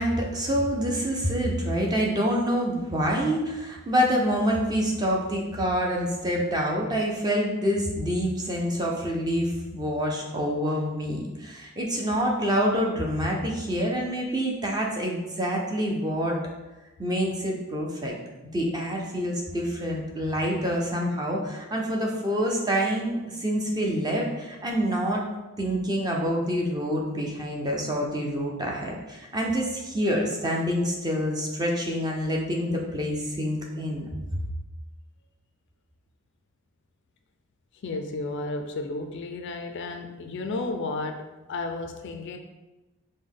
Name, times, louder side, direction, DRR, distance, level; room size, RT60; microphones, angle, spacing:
voice 1, 0.0-16.4 17.0-18.2 18.5-25.2 25.6-34.1, equal, 20° right, -1 dB, 0.5 m, -27 dB
voice 2, 37.8-42.4, left 3 dB, 50° left, 5 dB, 0.4 m, -33 dB
5.0 x 2.1 x 3.6 m, 1.1 s
head